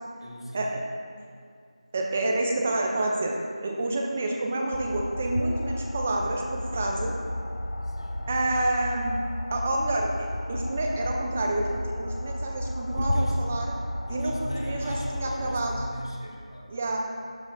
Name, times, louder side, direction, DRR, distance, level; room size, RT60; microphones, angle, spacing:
voice 1, 0.2-0.8 7.8-8.2 12.9-13.5 14.1-16.7, equal, 45° left, -4 dB, 2.3 m, -39 dB
voice 2, 1.9-3.3 3.6-7.1 8.3-9.2 9.5-13.7 14.1-15.7 16.7-17.0, right 2 dB, 15° right, 1 dB, 0.6 m, -28 dB
sound 1, 4.7-15.9, left 1 dB, 80° left, 0.8 m, -32 dB
14.0 x 12.5 x 2.7 m, 2.3 s
figure-of-eight pair, 175°, 4 cm